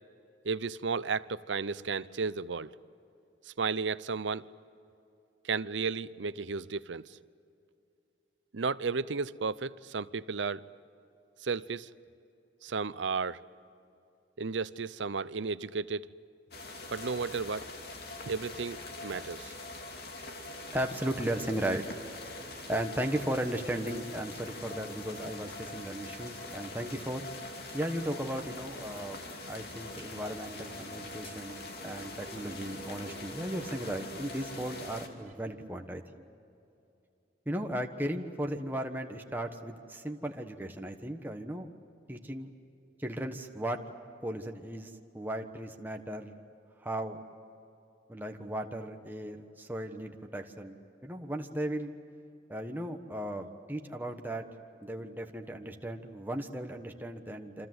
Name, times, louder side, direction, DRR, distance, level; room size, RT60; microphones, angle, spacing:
voice 1, 0.4-2.7 3.5-4.4 5.4-7.2 8.5-10.6 11.4-11.9 12.6-13.4 14.4-16.0 16.9-17.7 18.2-19.5, right 4 dB, 75° right, 0.7 m, -33 dB
sound 1, 16.5-35.1, left 2 dB, 55° left, 2.8 m, -43 dB
voice 2, 20.7-21.8 22.7-27.3 27.7-29.2 29.5-36.3 37.4-41.7 42.1-42.5 43.0-43.8 44.2-46.4 46.8-47.2 48.1-50.8 51.0-51.9 52.5-54.4 54.8-57.7, right 1 dB, 10° right, 1.3 m, -36 dB
Plucked string instrument, 21.8-35.3, right 3 dB, 40° right, 1.6 m, -57 dB
sound 2, 30.0-30.3 31.1-31.4, left 1 dB, 30° left, 6.1 m, -57 dB
28.0 x 26.0 x 7.9 m
head